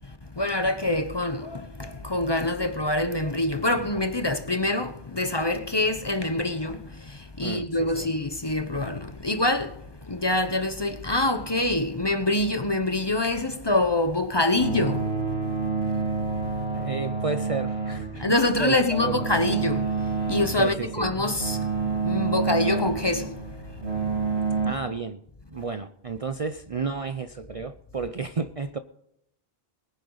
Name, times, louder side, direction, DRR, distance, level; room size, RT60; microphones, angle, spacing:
voice 1, 0.3-15.1 18.1-21.6 21.9-23.4 24.0-24.4, left 2 dB, 25° left, 0.9 m, -25 dB
voice 2, 7.4-8.1 16.7-18.2 18.6-19.3 20.6-21.1 24.6-25.2 25.5-28.8, right 4 dB, 40° right, 0.6 m, -32 dB
sound 1, 14.6-24.7, right 4 dB, 85° right, 3.1 m, -28 dB
21.5 x 9.9 x 4.0 m
omnidirectional pair, 1.0 m